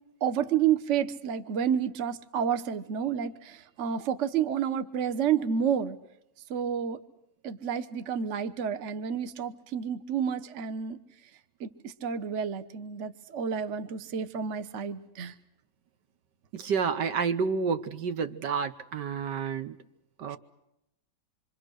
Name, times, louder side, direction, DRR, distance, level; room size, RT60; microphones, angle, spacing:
voice 1, 0.2-6.0 6.5-7.0 7.4-11.0 11.6-15.3, right 8 dB, 50° right, 9 dB, 1.3 m, -30 dB
voice 2, 16.5-19.8 20.2-20.4, right 6 dB, 80° right, 9 dB, 1.8 m, -29 dB
26.5 x 24.0 x 6.4 m, 0.84 s
omnidirectional pair, 1.8 m